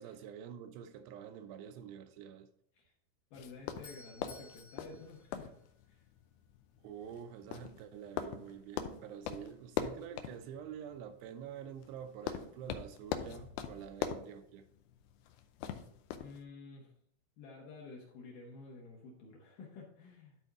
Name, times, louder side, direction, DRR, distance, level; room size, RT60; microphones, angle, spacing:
voice 1, 0.0-2.5 6.8-14.7, right 8 dB, 85° right, 2.6 m, -47 dB
sound 1, 3.3-16.4, left 9 dB, 85° left, 2.3 m, -43 dB
voice 2, 3.3-5.5 5.9-6.1 16.2-16.9 17.4-20.4, left 3 dB, 70° left, 2.2 m, -51 dB
Doorbell, 3.6-6.2, left 5 dB, 50° left, 0.8 m, -57 dB
12.0 x 4.3 x 3.6 m
omnidirectional pair, 5.1 m